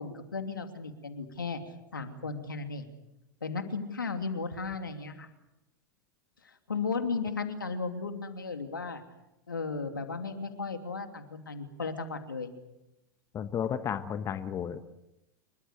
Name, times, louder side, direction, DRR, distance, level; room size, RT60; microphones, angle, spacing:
voice 1, 0.0-1.6 1.9-2.9 3.4-5.3 6.4-9.0 9.5-12.5, left 4 dB, 85° left, 6 dB, 2.9 m, -35 dB
voice 2, 13.3-14.8, left 8 dB, 25° left, 11 dB, 1.4 m, -33 dB
27.0 x 23.5 x 6.8 m, 0.92 s
figure-of-eight pair, 95°, 11 cm